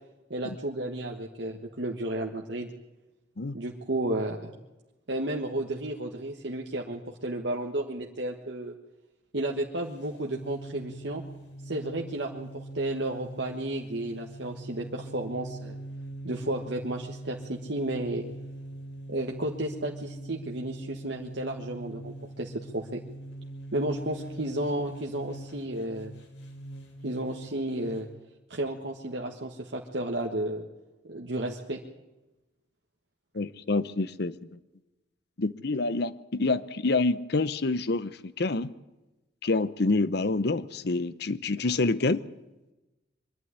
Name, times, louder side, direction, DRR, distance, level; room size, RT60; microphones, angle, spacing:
voice 1, 0.3-2.7 3.5-4.5 5.1-8.7 9.3-11.2 11.6-15.8 16.2-18.2 19.1-23.0 23.7-26.1 27.0-28.1 28.5-30.6 31.0-31.8, right 1 dB, 70° right, 0 dB, 1.5 m, -32 dB
sound 1, 9.8-28.1, right 1 dB, 80° left, 4.1 m, -42 dB
voice 2, 33.3-34.6 35.4-38.7 39.4-42.3, left 3 dB, 65° left, 15 dB, 0.8 m, -27 dB
23.5 x 11.5 x 9.7 m, 1.0 s
head